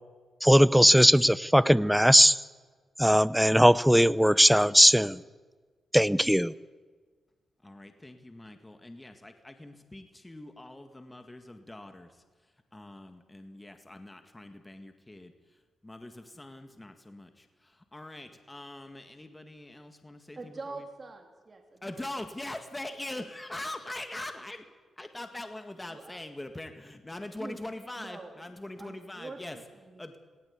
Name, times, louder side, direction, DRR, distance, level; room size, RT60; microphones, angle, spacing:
voice 1, 0.4-2.4 3.0-5.2 5.9-6.5, equal, ahead, 18 dB, 0.6 m, -19 dB
voice 2, 7.6-20.9 21.8-24.7 25.0-29.6 30.0-30.2, left 1 dB, 15° left, 7 dB, 1.8 m, -43 dB
voice 3, 20.4-22.0 25.9-26.2 27.4-27.6 28.0-28.3 28.8-30.2, right 3 dB, 35° right, 3 dB, 2.9 m, -44 dB
18.5 x 18.5 x 8.5 m, 1.4 s
cardioid pair, 95°, 0 cm